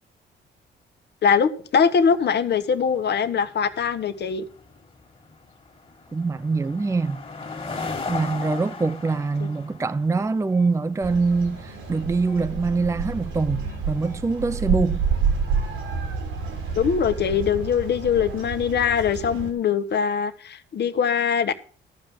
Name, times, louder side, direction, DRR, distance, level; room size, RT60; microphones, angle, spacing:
voice 1, 1.2-4.4 9.4-9.5 16.8-21.5, left 7 dB, 60° left, 1.3 m, -22 dB
sound 1, 2.1-15.6, left 4 dB, 25° left, 2.1 m, -39 dB
voice 2, 6.1-7.2 8.1-15.0, right 4 dB, 15° right, 0.5 m, -24 dB
sound 2, 11.0-19.5, right 5 dB, 90° right, 3.2 m, -29 dB
14.0 x 5.5 x 7.5 m
cardioid pair, 90°, 20 cm